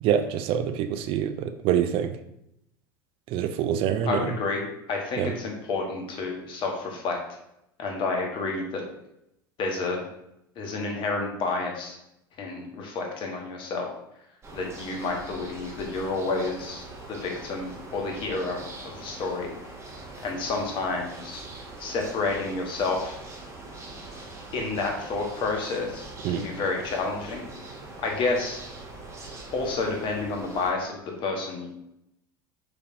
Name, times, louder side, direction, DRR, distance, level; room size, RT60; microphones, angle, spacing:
voice 1, 0.0-2.1 3.3-4.3 5.2-5.3 26.2-26.4, right 9 dB, 50° right, 10 dB, 0.4 m, -25 dB
voice 2, 4.0-7.2 7.8-8.8 9.6-10.0 10.6-12.0 12.4-13.9 14.5-19.5 20.2-21.4 21.8-23.2 24.5-27.5 28.0-28.6 29.5-31.7, left 3 dB, 45° left, 1 dB, 1.1 m, -30 dB
sound 1, 14.4-30.7, right 2 dB, 20° right, 1.2 m, -42 dB
4.8 x 3.2 x 2.6 m, 0.81 s
figure-of-eight pair, 75°, 12 cm